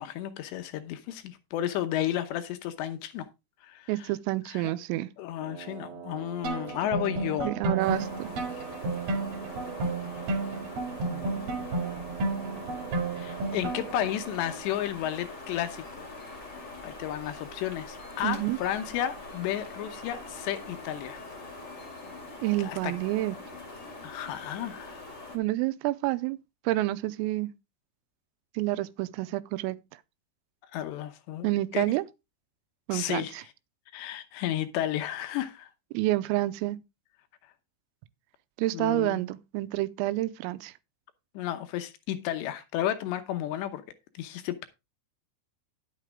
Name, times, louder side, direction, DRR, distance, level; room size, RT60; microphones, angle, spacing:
voice 1, 0.0-3.3 3.6-4.1 4.5-4.7 5.2-7.5 8.5-8.6 11.1-11.6 13.2-16.1 16.8-21.2 22.6-22.9 24.0-25.0 30.7-31.9 32.9-33.4 33.9-35.7 38.7-39.2 41.3-43.8 44.2-44.7, left 12 dB, 75° left, 2.6 m, -33 dB
voice 2, 3.9-5.1 7.5-8.3 18.2-18.6 22.4-23.4 25.3-26.4 26.7-27.5 28.6-29.8 31.4-32.0 32.9-33.4 36.0-36.8 38.6-40.7, right 17 dB, 90° right, 3.3 m, -28 dB
Wind instrument woodwind instrument, 5.4-14.7, right 9 dB, 70° right, 3.0 m, -45 dB
sound 1, 6.4-14.1, right 3 dB, 50° right, 3.1 m, -32 dB
sound 2, 7.8-25.4, left 2 dB, 40° left, 1.5 m, -43 dB
11.0 x 8.3 x 3.5 m
omnidirectional pair, 5.9 m